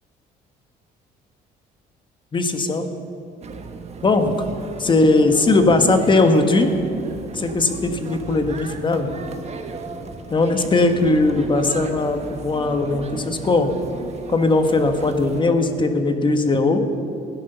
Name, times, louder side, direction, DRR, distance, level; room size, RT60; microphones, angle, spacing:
voice 1, 2.3-2.9 4.0-4.4 4.8-6.7 7.3-9.1 10.3-13.7 14.3-16.9, left 2 dB, 30° left, 7 dB, 1.4 m, -19 dB
sound 1, 3.4-15.4, right 4 dB, 40° right, 1.4 m, -35 dB
16.5 x 10.0 x 6.8 m, 2.8 s
cardioid pair, 110°, 17 cm